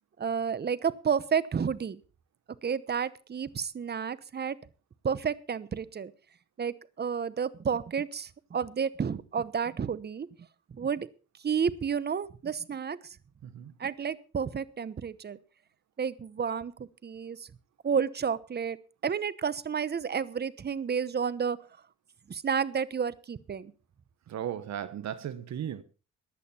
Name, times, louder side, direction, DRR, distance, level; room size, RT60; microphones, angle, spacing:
voice 1, 0.2-2.0 2.6-4.6 5.0-6.1 6.6-10.3 10.7-11.1 11.4-13.2 13.8-15.4 16.0-16.7 17.0-17.5 17.8-18.8 19.0-21.6 22.3-23.7, right 7 dB, 35° right, 0.9 m, -31 dB
voice 2, 13.4-13.7 24.3-25.8, right 10 dB, 65° right, 1.1 m, -36 dB
15.5 x 11.0 x 4.3 m
cardioid pair, 90°, 30 cm